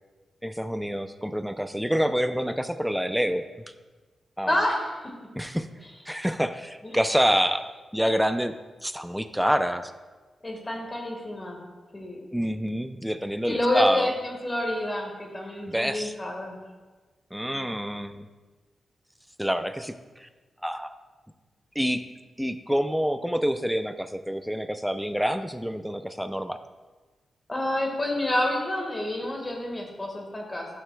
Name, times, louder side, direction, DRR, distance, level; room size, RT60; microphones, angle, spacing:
voice 1, 0.4-3.4 4.4-4.6 5.4-5.7 6.1-7.6 7.9-8.5 8.8-9.9 12.3-14.1 15.7-16.1 17.3-18.3 19.4-20.3 20.6-20.9 21.8-22.0 22.4-26.6, equal, ahead, 9 dB, 0.5 m, -27 dB
voice 2, 4.5-4.9 6.8-6.9 10.4-11.6 11.9-12.2 13.4-16.5 27.5-30.7, left 1 dB, 30° left, 1 dB, 1.6 m, -28 dB
11.0 x 5.7 x 2.3 m, 1.3 s
cardioid pair, 50°, 0 cm